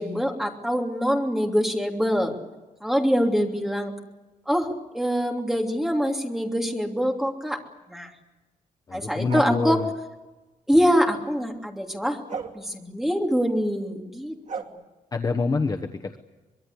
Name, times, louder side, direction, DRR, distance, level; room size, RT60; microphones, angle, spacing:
voice 1, 0.0-2.3 2.8-3.9 4.5-7.6 7.9-8.1 8.9-9.8 10.7-12.2 12.5-14.3, equal, 5° right, 1 dB, 3.0 m, -24 dB
voice 2, 8.9-9.9 15.1-16.2, left 4 dB, 30° left, 4 dB, 1.1 m, -26 dB
sound 1, 9.3-9.9 12.3-12.6 14.5-14.6, right 6 dB, 60° right, 2.7 m, -33 dB
24.5 x 22.5 x 8.4 m, 1.1 s
wide cardioid pair, 170°, 14 cm